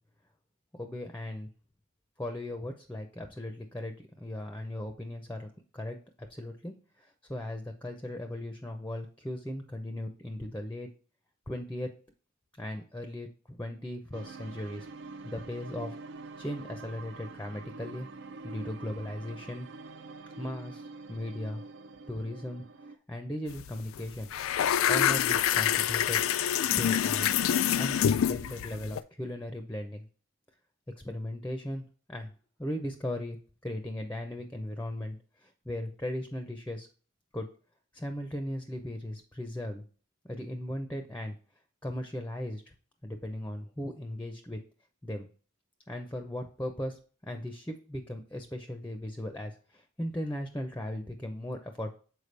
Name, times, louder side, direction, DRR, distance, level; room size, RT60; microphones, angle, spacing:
voice 1, 0.7-1.4 2.2-10.9 11.5-11.9 12.6-14.9 15.2-16.0 16.4-18.1 18.4-19.7 20.4-21.6 22.1-24.3 24.9-26.2 26.8-27.3 27.8-30.1 31.0-32.3 32.6-33.4 33.6-36.9 37.3-37.5 37.9-39.8 40.2-41.4 41.8-42.7 43.0-44.6 45.0-45.3 45.9-51.9, left 1 dB, 10° left, 5 dB, 0.5 m, -37 dB
sound 1, 14.1-23.0, right 3 dB, 60° right, 0.5 m, -45 dB
sound 2, 23.5-23.7 24.0-29.0, left 9 dB, 85° left, 0.3 m, -26 dB
6.7 x 4.6 x 3.2 m, 0.41 s
head